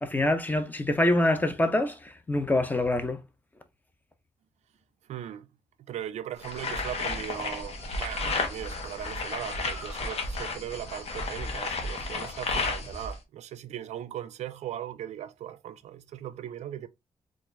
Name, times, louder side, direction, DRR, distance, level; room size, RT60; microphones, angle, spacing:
voice 1, 0.0-3.2, left 1 dB, 15° left, 0.5 m, -25 dB
voice 2, 5.1-5.5 5.9-16.9, right 11 dB, 90° right, 0.4 m, -38 dB
sound 1, 6.4-13.2, left 3 dB, 65° left, 0.9 m, -33 dB
Bird, 7.6-12.7, right 2 dB, 30° right, 0.9 m, -50 dB
4.0 x 2.4 x 2.5 m
wide cardioid pair, 125°, 11 cm